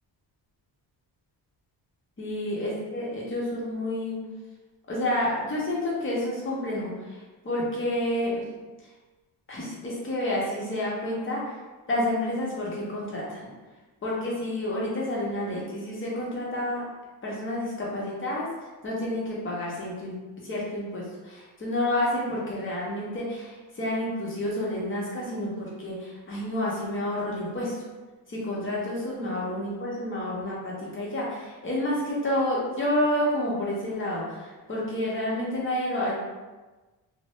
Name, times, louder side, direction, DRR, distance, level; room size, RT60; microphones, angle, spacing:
voice 1, 2.2-4.2 4.9-8.5 9.5-11.6 11.9-13.5 14.0-16.8 17.2-18.5 18.8-20.1 20.4-27.9 28.3-36.1, left 1 dB, 30° left, -5 dB, 0.8 m, -29 dB
2.5 x 2.0 x 3.0 m, 1.2 s
cardioid pair, 120°, 42 cm